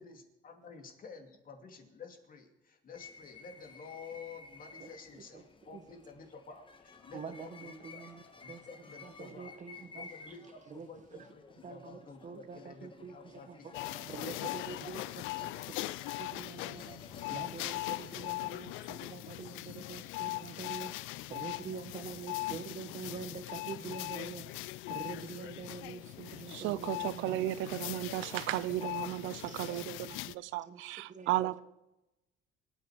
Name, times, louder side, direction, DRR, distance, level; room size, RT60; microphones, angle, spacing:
voice 1, 0.0-8.1 8.4-9.5 10.0-15.0 27.2-28.3 29.3-29.4 29.7-29.8, left 5 dB, 45° left, 2.7 m, -51 dB
sound 1, 2.9-17.4, left 4 dB, 25° left, 1.4 m, -54 dB
voice 2, 4.8-5.4 5.7-6.0 7.1-8.6 9.0-11.3 11.6-13.8 14.1-15.0 15.4-15.5 16.2-27.5 28.8-30.2 30.6-31.6, right 5 dB, 40° right, 1.5 m, -46 dB
sound 2, 13.7-30.3, left 18 dB, 90° left, 0.5 m, -40 dB
sound 3, 16.9-20.3, right 2 dB, 10° right, 3.2 m, -65 dB
voice 3, 26.5-29.9 30.2-31.6, right 15 dB, 85° right, 0.6 m, -34 dB
24.5 x 9.1 x 5.0 m
cardioid pair, 115°, 20 cm